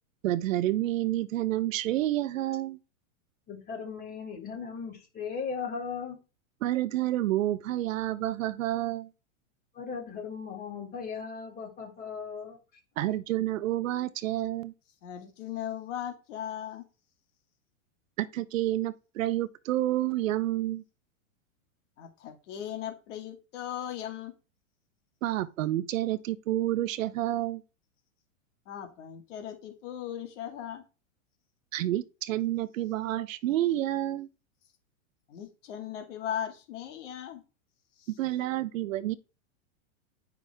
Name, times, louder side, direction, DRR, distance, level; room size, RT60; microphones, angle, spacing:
voice 1, 0.2-2.8 6.6-9.1 13.0-14.7 18.2-20.8 25.2-27.6 31.7-34.3 38.2-39.2, right 14 dB, 70° right, 0.9 m, -29 dB
voice 2, 3.5-6.2 9.7-12.6, left 5 dB, 25° left, 5.0 m, -37 dB
voice 3, 15.0-16.8 22.0-24.3 28.7-30.8 35.3-37.4 38.0-38.1, left 10 dB, 60° left, 2.3 m, -38 dB
10.5 x 5.9 x 3.6 m
hypercardioid pair, 140°, 41 cm